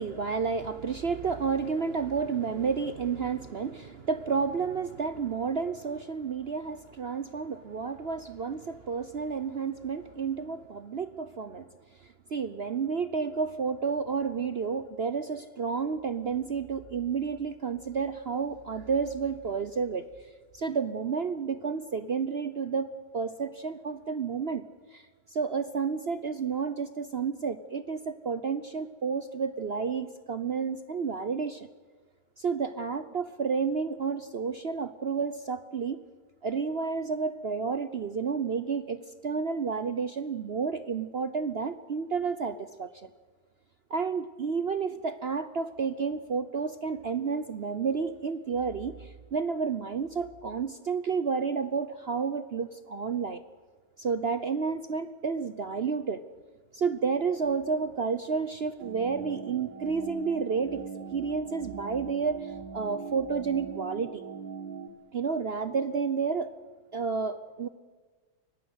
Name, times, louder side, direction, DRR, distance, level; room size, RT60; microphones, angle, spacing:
voice 1, 0.0-11.7 12.3-20.1 20.5-22.9 23.1-24.6 24.9-25.0 25.3-31.7 32.4-36.0 36.4-42.9 43.9-53.4 54.0-56.2 56.7-60.8 61.1-64.2 65.1-66.5 66.9-67.7, right 5 dB, 50° right, 12 dB, 0.8 m, -31 dB
sound 1, 58.8-64.9, right 6 dB, 80° right, 1.9 m, -40 dB
23.5 x 18.5 x 8.0 m, 1.4 s
omnidirectional pair, 1.9 m